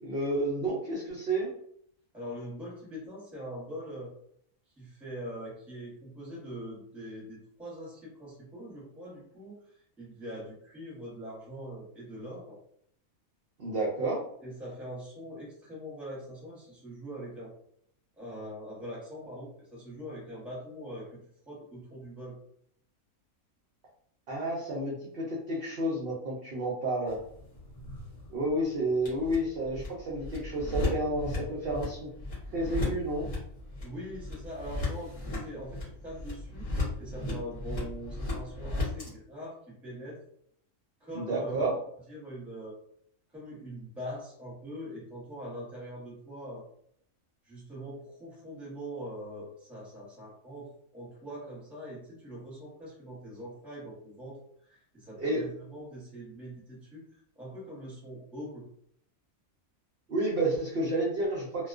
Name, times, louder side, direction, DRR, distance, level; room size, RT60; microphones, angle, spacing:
voice 1, 0.0-1.5 13.6-14.2 24.3-27.2 28.3-32.1 32.5-33.3 41.1-41.7 55.2-55.4 60.1-61.7, right 1 dB, 60° right, -4 dB, 0.6 m, -30 dB
voice 2, 2.1-4.1 4.7-12.6 14.4-17.5 18.2-21.1 21.5-22.4 33.8-40.2 41.0-41.6 42.1-42.7 43.3-46.6 47.4-50.7 50.9-58.6, equal, ahead, -6 dB, 0.8 m, -42 dB
sound 1, 27.1-39.1, left 2 dB, 35° left, 0.8 m, -36 dB
2.3 x 2.2 x 2.4 m, 0.66 s
omnidirectional pair, 1.5 m